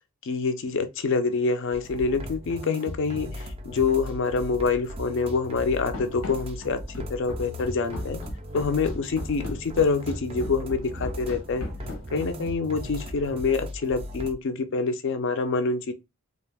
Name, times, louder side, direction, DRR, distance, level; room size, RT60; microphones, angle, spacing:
voice 1, 0.2-6.8 7.1-8.2 8.5-11.7 12.1-15.9, left 4 dB, 55° left, 0.4 m, -26 dB
sound 1, 1.7-14.3, left 1 dB, 25° right, 0.3 m, -37 dB
Run, 5.9-12.6, left 2 dB, 85° left, 0.8 m, -38 dB
2.5 x 2.3 x 3.3 m
head